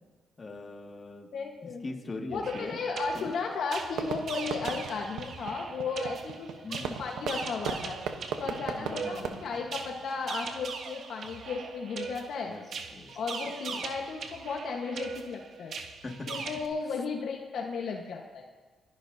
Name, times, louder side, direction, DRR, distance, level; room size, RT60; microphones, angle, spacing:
voice 1, 0.4-1.3 1.6-2.8 3.1-3.3 4.9-5.0 6.6-7.0 8.7-9.5 12.4-12.6 12.9-13.8 16.0-16.3 16.9-17.0, left 3 dB, 30° left, 1 dB, 2.2 m, -41 dB
voice 2, 1.3-1.9 2.3-8.0 8.4-12.5 13.1-15.7 16.3-18.4, left 4 dB, 65° left, 1 dB, 1.5 m, -35 dB
sound 1, 2.3-16.7, right 5 dB, 60° right, 1.6 m, -40 dB
Fireworks, 3.9-10.5, right 7 dB, 85° right, 1.1 m, -38 dB
29.5 x 11.5 x 2.9 m, 1.4 s
cardioid pair, 90°, 0 cm